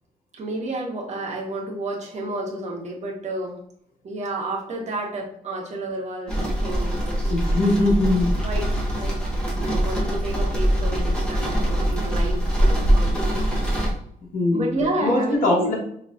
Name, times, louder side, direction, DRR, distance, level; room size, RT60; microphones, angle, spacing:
voice 1, 0.3-3.6 4.0-7.3 8.4-9.4 9.7-13.4 14.5-15.7, right 2 dB, 50° right, -1 dB, 1.2 m, -30 dB
sound 1, 6.3-13.9, right 1 dB, 5° left, 1.2 m, -23 dB
voice 2, 7.3-8.4 14.3-15.7, left 2 dB, 85° left, -4 dB, 1.4 m, -21 dB
5.7 x 3.1 x 2.5 m, 0.66 s
wide cardioid pair, 150°, 15 cm